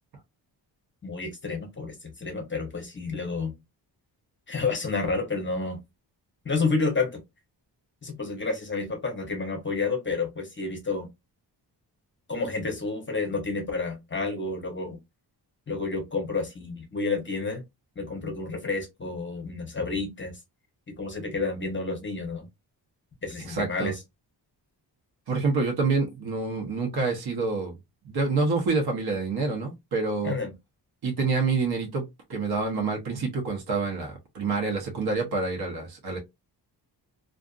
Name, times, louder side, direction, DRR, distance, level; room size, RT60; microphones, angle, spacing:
voice 1, 1.0-3.6 4.5-5.8 6.4-7.2 8.0-11.1 12.3-15.0 15.7-17.6 18.0-20.4 20.9-22.5 23.2-24.0 30.2-30.5, left 3 dB, 25° left, 0.8 m, -30 dB
voice 2, 23.5-23.9 25.3-27.8 28.0-30.3 31.0-32.0 32.3-36.2, right 4 dB, 60° right, 0.9 m, -27 dB
2.5 x 2.4 x 2.4 m
wide cardioid pair, 120°, 43 cm